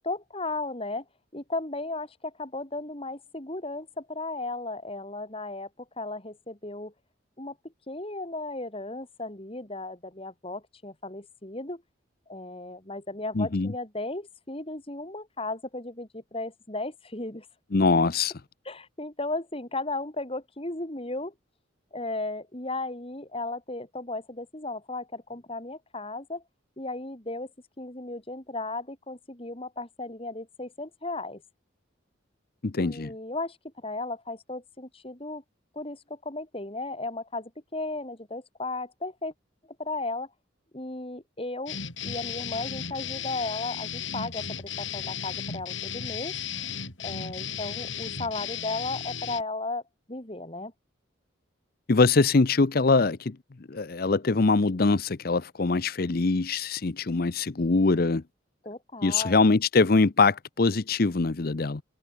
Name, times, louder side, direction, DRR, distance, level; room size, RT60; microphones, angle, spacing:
voice 1, 0.0-1.0 1.3-5.7 6.0-6.9 7.4-7.6 7.9-11.8 12.3-17.5 18.6-21.3 21.9-26.4 26.8-27.5 27.8-31.4 32.8-35.4 35.7-39.3 39.8-40.3 40.7-46.3 47.0-49.8 50.1-50.7 58.6-59.4, left 2 dB, 30° left, 2.9 m, -35 dB
voice 2, 13.4-13.7 17.7-18.3 32.6-33.1 51.9-53.4 53.7-58.2 59.0-61.8, left 3 dB, 50° left, 0.7 m, -23 dB
sound 1, 41.7-49.4, left 7 dB, 75° left, 8.0 m, -35 dB
head